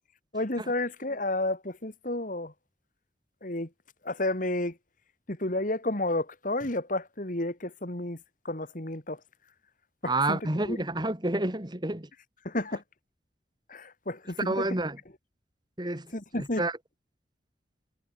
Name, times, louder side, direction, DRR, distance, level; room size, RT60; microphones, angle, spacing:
voice 1, 0.3-2.5 3.4-3.7 4.0-4.8 5.3-8.2 8.4-9.2 10.0-10.4 10.6-10.8 12.4-12.8 13.7-14.6 16.1-16.6, left 2 dB, 45° left, 2.7 m, -31 dB
voice 2, 10.0-12.1 14.4-15.0 15.8-16.7, right 2 dB, 25° right, 2.0 m, -29 dB
head